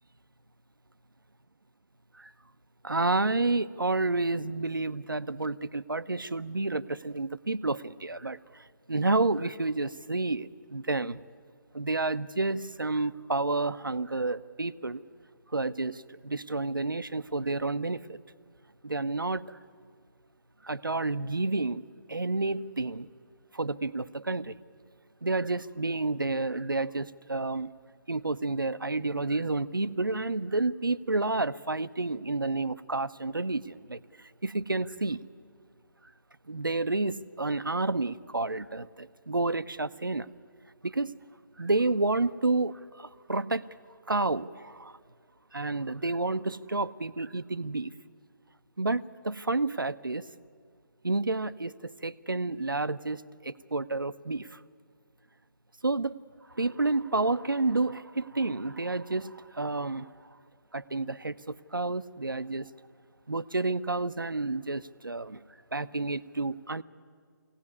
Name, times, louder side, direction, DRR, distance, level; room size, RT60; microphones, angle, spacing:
voice 1, 2.8-11.2 11.7-15.0 15.5-18.2 18.8-19.6 20.6-21.8 22.1-23.1 23.5-24.6 25.2-27.7 28.1-35.2 36.5-40.3 40.8-41.1 41.6-43.6 44.1-44.9 45.5-47.9 48.8-50.2 51.0-54.6 55.8-56.2 56.5-60.1 60.7-62.7 63.3-65.4 65.7-66.8, right 2 dB, 90° right, 14 dB, 0.7 m, -30 dB
22.0 x 17.0 x 9.6 m, 2.1 s
figure-of-eight pair, 140°, 11 cm